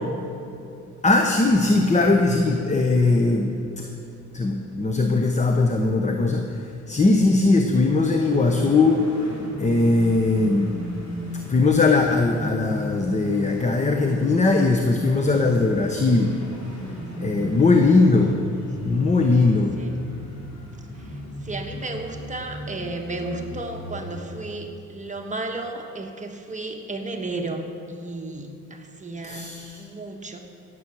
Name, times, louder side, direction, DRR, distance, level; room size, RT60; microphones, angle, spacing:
voice 1, 1.0-3.9 4.3-6.6 6.9-9.1 9.6-10.7 11.5-16.3 17.2-18.4 18.9-19.7 29.2-29.8, left 3 dB, 25° left, 4 dB, 1.0 m, -20 dB
sound 1, 8.0-24.2, left 1 dB, 60° left, 3.5 m, -35 dB
voice 2, 16.9-17.5 19.8-20.0 21.0-21.1 21.4-30.4, right 2 dB, 25° right, 3 dB, 1.3 m, -34 dB
17.5 x 7.9 x 6.2 m, 2.8 s
cardioid pair, 90°, 30 cm